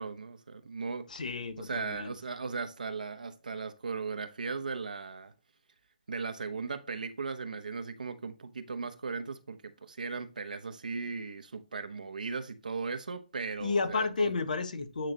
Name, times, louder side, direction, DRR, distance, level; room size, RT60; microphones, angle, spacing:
voice 1, 0.0-1.1 1.6-5.3 6.1-14.3, right 4 dB, 85° right, 1.0 m, -37 dB
voice 2, 1.1-2.1 13.6-15.1, left 4 dB, 75° left, 1.3 m, -31 dB
9.2 x 3.3 x 3.9 m
hypercardioid pair, 160°, 4 cm